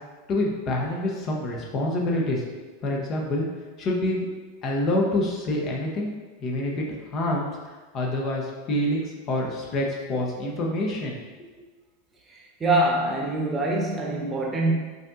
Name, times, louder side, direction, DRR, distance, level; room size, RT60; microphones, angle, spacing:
voice 1, 0.3-2.4 2.8-3.4 3.8-4.3 4.6-6.1 6.4-7.5 7.9-11.2, left 1 dB, 40° left, -1 dB, 0.7 m, -26 dB
voice 2, 12.3-14.7, right 2 dB, 25° right, -1 dB, 0.8 m, -24 dB
5.0 x 2.7 x 2.4 m, 1.3 s
hypercardioid pair, 95°, 0 cm